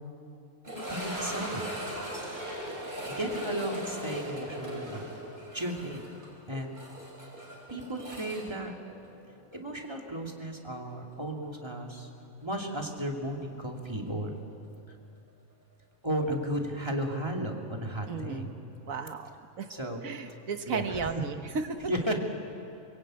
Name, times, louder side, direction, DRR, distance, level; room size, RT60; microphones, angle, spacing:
sound 1, 0.6-9.6 9.8-9.9 10.5-10.6 13.2-13.3, right 1 dB, 35° right, 5.4 m, -38 dB
voice 1, 0.9-1.7 3.0-5.1 5.5-6.1 6.5-6.7 7.7-8.7 9.5-12.1 12.4-14.3 16.0-18.5 19.7-20.0 20.7-21.1 21.9-22.2, right 1 dB, 20° right, 1 dB, 2.6 m, -34 dB
voice 2, 18.1-18.5 18.8-19.3 19.6-19.7 20.0-21.9, right 5 dB, 80° right, 7 dB, 1.7 m, -34 dB
23.5 x 22.5 x 8.9 m, 2.6 s
omnidirectional pair, 1.4 m